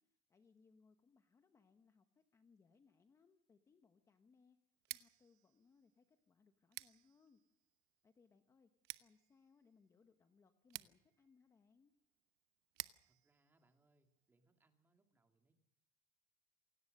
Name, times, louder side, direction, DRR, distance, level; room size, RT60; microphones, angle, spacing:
voice 1, 0.0-4.6 4.9-7.4 8.0-8.7 9.0-11.9, left 5 dB, 15° left, 8 dB, 1.0 m, -71 dB
Scissors, 4.7-14.6, right 20 dB, 55° right, 1.0 m, -56 dB
voice 2, 13.1-15.5, right 2 dB, 10° right, 5 dB, 2.3 m, -78 dB
28.0 x 17.5 x 6.5 m, 0.82 s
cardioid pair, 175°, 20 cm